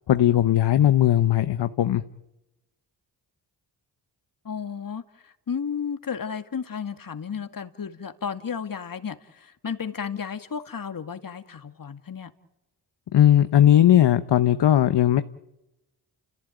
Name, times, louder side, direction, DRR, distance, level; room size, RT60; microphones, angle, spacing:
voice 1, 0.1-2.0 13.1-15.2, left 11 dB, 65° left, 1.0 m, -18 dB
voice 2, 4.4-5.0 5.5-12.3, left 6 dB, 50° left, 2.2 m, -33 dB
29.5 x 15.0 x 9.2 m
cardioid pair, 55°, 44 cm